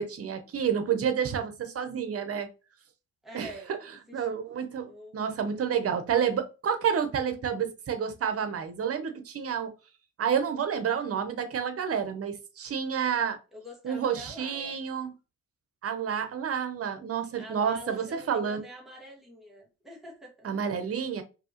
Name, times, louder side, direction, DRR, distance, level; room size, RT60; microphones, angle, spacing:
voice 1, 0.0-2.5 3.3-3.5 4.1-9.7 10.2-13.4 13.8-15.1 15.8-18.6 20.4-21.2, right 7 dB, 50° right, 0.9 m, -29 dB
voice 2, 3.2-3.8 4.1-4.3 4.9-5.2 13.5-14.8 17.4-20.5, equal, ahead, 1.8 m, -46 dB
5.2 x 2.8 x 3.0 m
cardioid pair, 90°, 30 cm